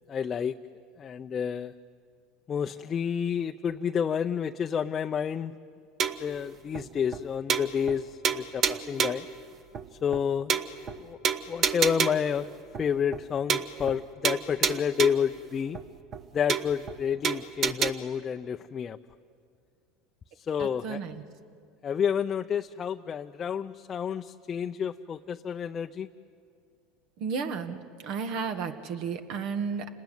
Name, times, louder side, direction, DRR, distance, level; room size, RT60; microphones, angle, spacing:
voice 1, 0.1-0.6 1.0-1.7 2.5-5.5 6.2-9.2 10.0-10.6 11.0-11.2 11.5-12.5 12.8-15.8 16.3-19.0 20.5-21.0 21.8-26.1, left 7 dB, 35° left, 5 dB, 0.6 m, -29 dB
sound 1, 6.0-6.3 6.7-6.8 7.1-7.2 7.5-8.0 8.2-9.3 9.7-9.8 10.1-10.2 10.5-11.0 11.2-12.3 12.7-12.8 13.1-13.2 13.5-14.0 14.2-15.3 15.7-15.8 16.1-16.2 16.5-17.0 17.2-17.9, right 6 dB, 40° right, 1.2 m, -28 dB
voice 2, 20.6-21.2 27.2-27.8 28.0-29.9, right 5 dB, 60° right, 8 dB, 1.8 m, -32 dB
29.0 x 20.0 x 9.4 m, 2.3 s
supercardioid pair, 105°, 0 cm